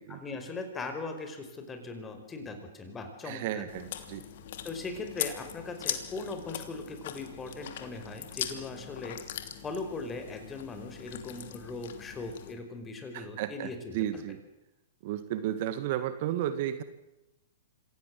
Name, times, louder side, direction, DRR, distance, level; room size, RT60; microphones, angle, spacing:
voice 1, 0.1-3.9 4.6-9.2 9.6-14.2, left 3 dB, 15° left, 6 dB, 5.0 m, -39 dB
voice 2, 3.2-4.2 13.1-14.4 15.0-16.8, right 12 dB, 55° right, 12 dB, 2.0 m, -33 dB
Chewing mastication, 3.7-12.5, left 10 dB, 60° left, 2.9 m, -40 dB
26.0 x 17.0 x 7.7 m, 0.94 s
hypercardioid pair, 130°, 0 cm